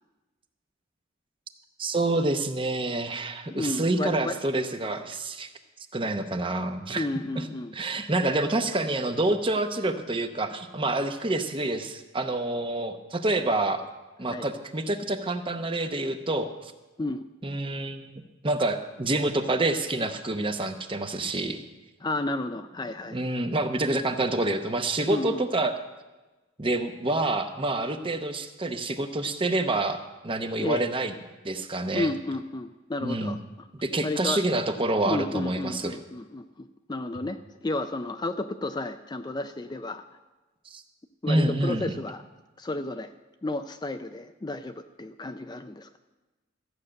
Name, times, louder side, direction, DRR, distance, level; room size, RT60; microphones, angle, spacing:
voice 1, 1.8-5.5 5.9-7.1 7.4-7.5 7.7-13.8 14.2-16.7 17.4-18.1 18.4-21.6 23.1-25.7 26.6-31.1 31.4-32.1 33.0-33.4 33.8-36.0 40.7-40.8 41.3-41.9, right 2 dB, 25° right, 7 dB, 0.8 m, -27 dB
voice 2, 3.5-4.4 6.9-7.7 14.3-14.5 17.0-17.2 22.0-23.2 25.1-25.4 30.6-30.9 31.9-33.7 34.0-34.4 35.1-40.0 41.2-42.2 42.6-43.1 43.4-46.0, left 2 dB, 20° left, 8 dB, 0.4 m, -32 dB
14.0 x 6.6 x 8.7 m, 1.2 s
head